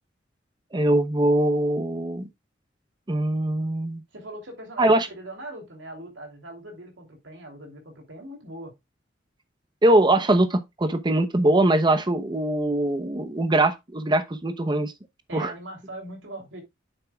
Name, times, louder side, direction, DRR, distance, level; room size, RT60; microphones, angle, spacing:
voice 1, 0.7-2.3 3.1-4.0 4.8-5.1 9.8-14.9 15.3-15.5, right 1 dB, 25° right, 0.8 m, -22 dB
voice 2, 4.1-8.7 15.3-16.6, right 1 dB, 80° right, 3.1 m, -40 dB
9.1 x 7.5 x 2.3 m
head